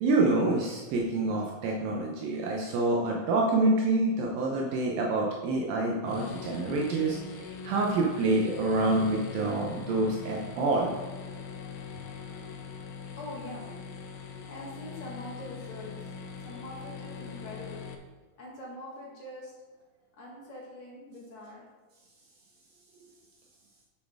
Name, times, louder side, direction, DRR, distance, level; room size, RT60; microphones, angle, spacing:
voice 1, 0.0-10.9, right 2 dB, 80° right, -1 dB, 2.5 m, -27 dB
sound 1, 6.0-18.0, left 5 dB, 85° left, 2.5 m, -42 dB
voice 2, 13.2-13.6 14.5-18.0 18.4-21.7, left 1 dB, 50° left, -4 dB, 1.8 m, -44 dB
9.1 x 7.3 x 3.5 m, 1.3 s
omnidirectional pair, 4.2 m